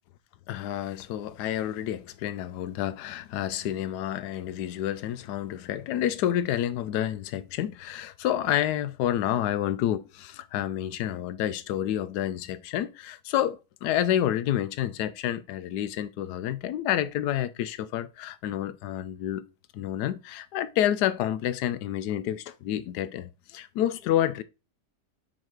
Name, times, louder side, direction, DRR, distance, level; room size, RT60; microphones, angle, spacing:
voice 1, 0.5-19.4 19.7-24.4, left 11 dB, 75° left, 1.2 m, -29 dB
5.7 x 5.0 x 4.6 m
omnidirectional pair, 1.8 m